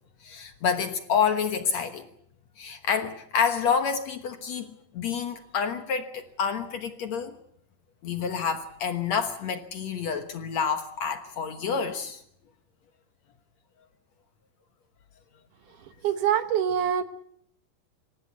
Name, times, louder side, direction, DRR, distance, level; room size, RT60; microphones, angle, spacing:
voice 1, 0.2-2.1 2.6-7.4 8.0-12.2, left 6 dB, 60° left, 2.1 m, -28 dB
voice 2, 16.0-17.0, right 9 dB, 70° right, 2.4 m, -24 dB
26.5 x 15.0 x 9.6 m
omnidirectional pair, 4.2 m